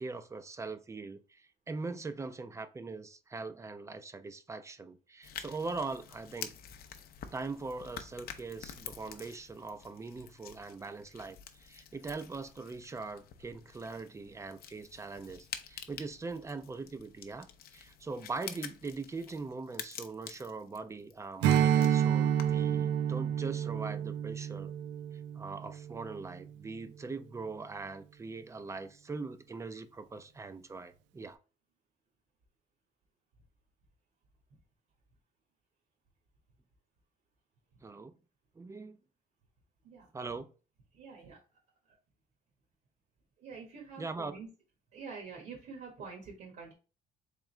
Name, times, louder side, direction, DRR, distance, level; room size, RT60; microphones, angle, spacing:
voice 1, 0.0-6.5 7.3-24.7 25.4-31.4 37.8-38.1 38.6-39.0 40.1-40.5 44.0-44.3, right 3 dB, 15° right, 0.4 m, -41 dB
sound 1, 5.2-22.7, left 9 dB, 55° left, 0.6 m, -48 dB
Strum, 21.4-26.2, right 9 dB, 85° right, 0.5 m, -29 dB
voice 2, 40.9-41.4 41.8-42.0 43.4-44.5 44.9-46.7, right 5 dB, 60° right, 1.4 m, -46 dB
3.7 x 3.5 x 3.1 m
cardioid pair, 120°, 19 cm